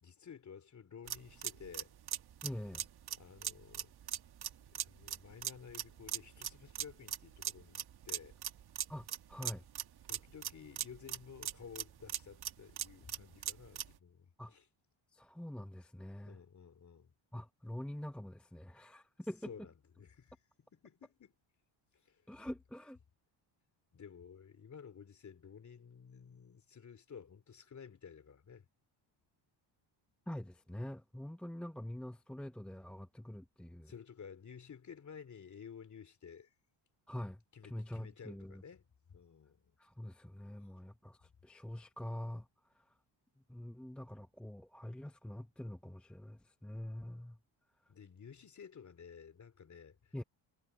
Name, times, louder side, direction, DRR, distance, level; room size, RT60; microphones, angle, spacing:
voice 1, 0.0-1.9 3.1-3.9 4.7-8.4 10.1-14.7 16.2-17.1 19.4-20.4 20.7-21.3 21.9-22.2 23.9-28.7 33.8-36.5 37.5-39.7 47.9-50.1, left 7 dB, 35° left, 2.9 m, -53 dB
sound 1, 1.1-14.0, right 10 dB, 50° right, 1.5 m, -41 dB
voice 2, 2.4-2.9 8.9-9.6 14.4-14.5 15.1-16.4 17.3-19.5 22.3-23.0 30.3-33.9 37.1-38.6 39.8-42.9 43.5-47.4 50.1-50.2, left 1 dB, ahead, 0.8 m, -45 dB
cardioid pair, 115°, 48 cm